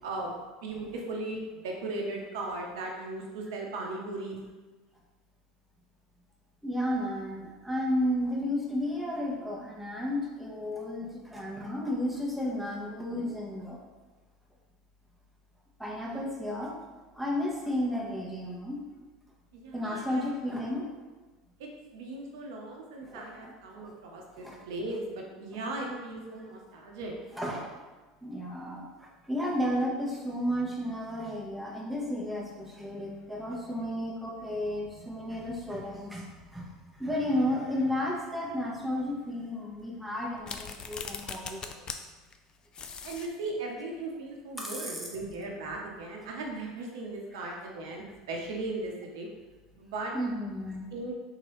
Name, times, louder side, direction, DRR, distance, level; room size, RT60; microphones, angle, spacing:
voice 1, 0.0-4.4 19.5-20.3 21.6-27.1 43.0-49.3 49.8-50.1 50.9-51.1, right 2 dB, 75° right, 0 dB, 0.8 m, -37 dB
voice 2, 6.6-13.8 15.8-16.8 17.1-18.8 19.7-20.9 23.0-23.6 24.4-24.6 25.8-26.0 27.3-27.8 28.2-42.1 44.6-45.0 47.4-47.6 50.1-50.9, left 1 dB, 5° right, -3 dB, 1.0 m, -33 dB
sound 1, 40.4-42.0 42.3-42.4 42.7-43.3, left 6 dB, 35° left, 0.4 m, -39 dB
3.8 x 3.0 x 3.1 m, 1.3 s
hypercardioid pair, 85°, 2 cm